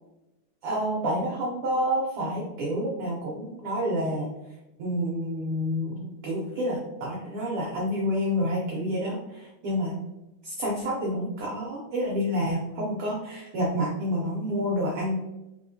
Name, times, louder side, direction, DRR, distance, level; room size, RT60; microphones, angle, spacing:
voice 1, 0.6-4.3 4.8-9.9 10.4-15.2, equal, 80° right, -3 dB, 1.2 m, -28 dB
4.5 x 3.5 x 2.7 m, 0.97 s
omnidirectional pair, 3.6 m